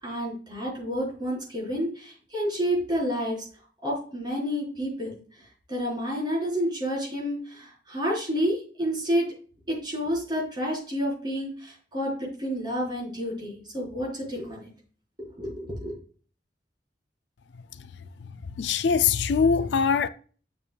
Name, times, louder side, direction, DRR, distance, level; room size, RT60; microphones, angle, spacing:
voice 1, 0.0-3.5 3.8-5.2 5.7-9.3 9.7-14.7 15.2-15.9, equal, 25° right, 4.2 m, -29 dB
voice 2, 18.2-20.1, left 6 dB, 75° left, 0.4 m, -23 dB
9.1 x 6.8 x 2.3 m
head